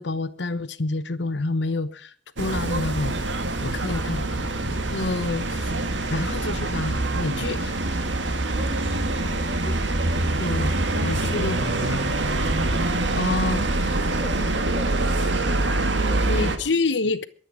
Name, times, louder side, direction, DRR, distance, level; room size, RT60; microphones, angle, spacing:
voice 1, 0.0-3.1 3.6-4.2 4.9-5.7 6.1-8.0 10.4-12.0 13.2-13.9 16.3-17.3, left 3 dB, 70° left, 1.0 m, -28 dB
sound 1, 2.4-16.6, right 2 dB, 75° right, 2.0 m, -25 dB
voice 2, 3.9-4.7 8.4-9.8 11.1-12.4 13.9-16.7, equal, 15° right, 6.8 m, -42 dB
23.0 x 9.0 x 4.9 m
head